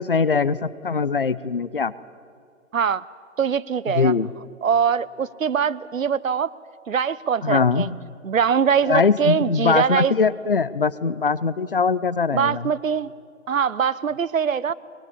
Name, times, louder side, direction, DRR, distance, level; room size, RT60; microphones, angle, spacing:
voice 1, 0.0-1.9 3.9-4.3 7.4-7.9 8.9-12.7, left 5 dB, 45° left, 18 dB, 0.6 m, -21 dB
voice 2, 2.7-3.0 3.4-4.1 4.6-6.5 6.9-7.9 8.2-10.1 12.3-13.1 13.5-14.7, right 7 dB, 80° right, 18 dB, 0.9 m, -22 dB
23.0 x 22.0 x 8.5 m, 2.3 s
hypercardioid pair, 180°, 39 cm